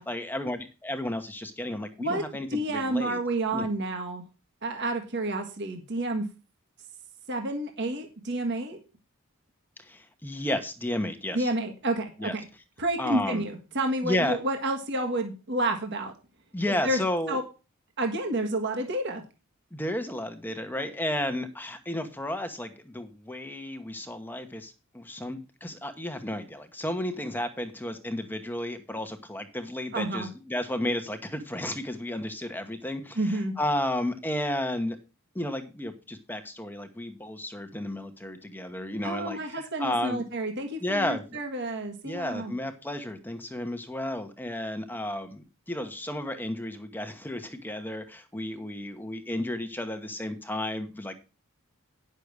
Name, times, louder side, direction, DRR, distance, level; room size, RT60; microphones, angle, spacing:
voice 1, 0.1-3.2 3.5-3.7 9.8-11.5 12.2-12.3 13.0-13.5 14.0-14.4 16.5-17.4 19.7-35.0 35.3-40.2 40.8-41.2 42.0-51.1, left 1 dB, 10° left, 7 dB, 1.1 m, -32 dB
voice 2, 2.5-4.2 4.6-6.2 7.3-8.8 11.3-12.4 12.8-16.1 16.7-17.0 17.3-17.4 18.0-19.2 29.9-30.3 33.1-33.5 39.0-42.5, right 1 dB, 55° right, 4 dB, 1.6 m, -30 dB
10.0 x 6.7 x 4.8 m, 0.31 s
head